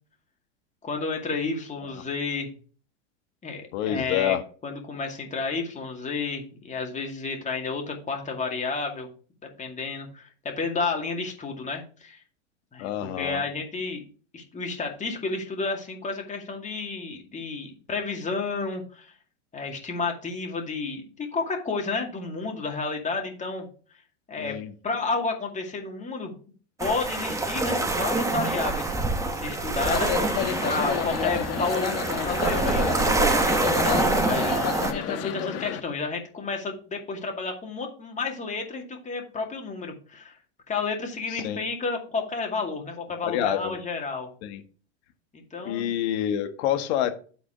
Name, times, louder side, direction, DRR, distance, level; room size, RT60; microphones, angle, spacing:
voice 1, 0.8-2.5 3.4-4.4 4.6-9.1 9.6-12.2 12.7-14.0 14.3-19.1 19.5-23.7 24.3-24.6 24.8-26.3 26.8-29.0 29.2-32.0 32.3-34.6 34.9-40.4 40.7-44.3 45.5-45.9, left 4 dB, 20° left, 2 dB, 2.2 m, -31 dB
voice 2, 3.7-4.4 12.8-13.4 24.4-24.7 30.4-30.6 41.3-41.6 43.2-43.8 44.4-44.6 45.6-47.1, left 11 dB, 60° left, 8 dB, 1.4 m, -27 dB
sound 1, 26.8-34.9, right 3 dB, 10° right, 1.1 m, -26 dB
sound 2, 29.8-35.8, left 9 dB, 40° left, 1.2 m, -30 dB
9.3 x 4.0 x 5.0 m, 0.39 s
hypercardioid pair, 105°, 36 cm